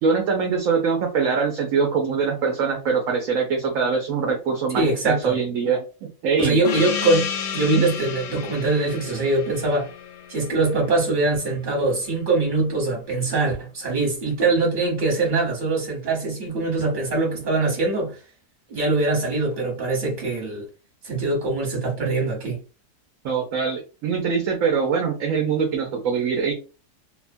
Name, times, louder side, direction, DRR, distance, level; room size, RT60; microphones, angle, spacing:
voice 1, 0.0-6.6 7.7-7.8 23.2-26.5, right 5 dB, 65° right, 0.8 m, -23 dB
voice 2, 4.7-5.4 6.4-9.9 10.3-18.2 18.7-20.7 21.0-22.6, right 2 dB, 35° right, 1.1 m, -23 dB
Gong, 6.6-11.7, left 7 dB, 70° left, 0.7 m, -32 dB
2.8 x 2.2 x 2.5 m
omnidirectional pair, 1.8 m